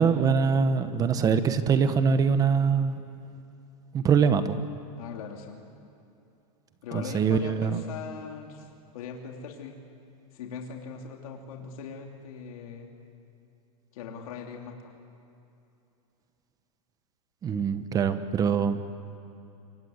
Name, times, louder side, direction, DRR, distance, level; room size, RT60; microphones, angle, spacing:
voice 1, 0.0-3.0 3.9-4.6 6.9-7.8 17.4-18.8, right 6 dB, 20° right, 11 dB, 1.1 m, -23 dB
voice 2, 5.0-5.6 6.8-8.7 8.9-9.7 10.3-12.9 13.9-14.9, left 6 dB, 70° left, 1 dB, 3.2 m, -40 dB
26.5 x 24.5 x 8.0 m, 2.7 s
supercardioid pair, 155°, 19 cm